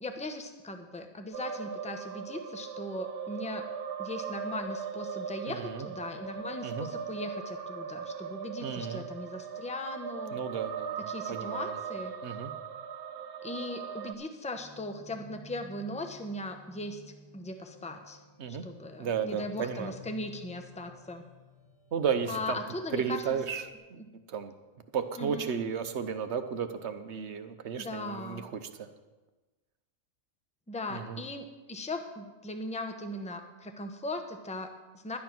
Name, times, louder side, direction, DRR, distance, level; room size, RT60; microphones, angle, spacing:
voice 1, 0.0-3.7 4.0-10.4 11.1-12.1 13.4-17.0 17.3-18.2 18.5-21.2 22.3-23.4 24.0-24.1 25.2-25.6 27.8-28.5 30.7-35.2, left 2 dB, 5° left, 6 dB, 0.7 m, -39 dB
sound 1, 1.3-14.1, right 6 dB, 85° right, 1.2 m, -39 dB
voice 2, 5.5-5.9 6.6-6.9 8.6-9.0 10.3-11.8 12.2-12.5 18.4-18.7 19.0-19.9 21.9-22.6 22.9-24.0 24.3-24.5 24.9-28.9 30.9-31.2, right 7 dB, 55° right, 9 dB, 1.0 m, -34 dB
sound 2, 14.5-23.8, left 3 dB, 25° left, 1.1 m, -53 dB
11.5 x 9.3 x 6.0 m, 1.2 s
omnidirectional pair, 1.5 m